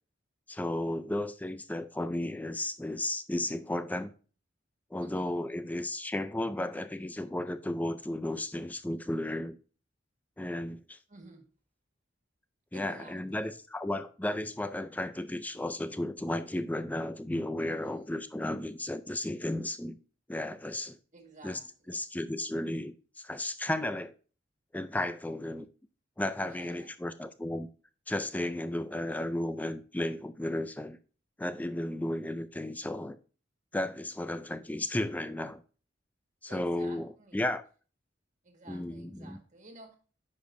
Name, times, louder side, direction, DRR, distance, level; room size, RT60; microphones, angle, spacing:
voice 1, 0.5-4.1 4.9-9.6 10.4-11.0 12.7-20.0 20.3-21.0 21.4-21.6 21.9-24.1 24.7-25.7 26.2-27.7 28.1-31.0 31.4-33.2 33.7-35.6 36.4-37.6 38.7-39.4, left 1 dB, 10° left, 0.4 m, -34 dB
voice 2, 5.0-5.3 11.1-11.5 12.7-13.6 17.8-18.2 21.1-22.0 26.4-26.9 36.5-37.5 38.4-40.0, right 2 dB, 40° right, 1.7 m, -52 dB
9.8 x 5.2 x 2.6 m
head